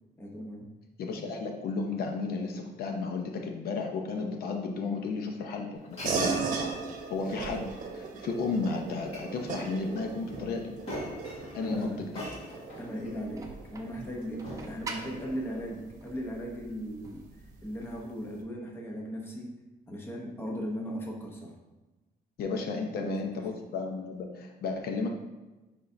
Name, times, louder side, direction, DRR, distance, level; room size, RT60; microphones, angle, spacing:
voice 1, 0.2-0.7 11.6-12.0 12.8-17.3 17.6-19.6 19.9-21.6 23.0-23.1 23.5-23.6, equal, 15° left, 0 dB, 0.8 m, -37 dB
voice 2, 1.0-6.5 7.1-7.7 7.9-10.7 11.5-12.2 22.4-25.1, left 4 dB, 70° left, 3 dB, 0.8 m, -33 dB
Glass, 5.8-15.7, equal, 40° left, 1.9 m, -45 dB
sound 1, 6.0-15.9, right 4 dB, 55° right, 0.9 m, -37 dB
sound 2, 13.0-18.0, right 3 dB, 20° right, 0.6 m, -46 dB
9.7 x 3.7 x 2.7 m, 1.1 s
cardioid pair, 175°, 16 cm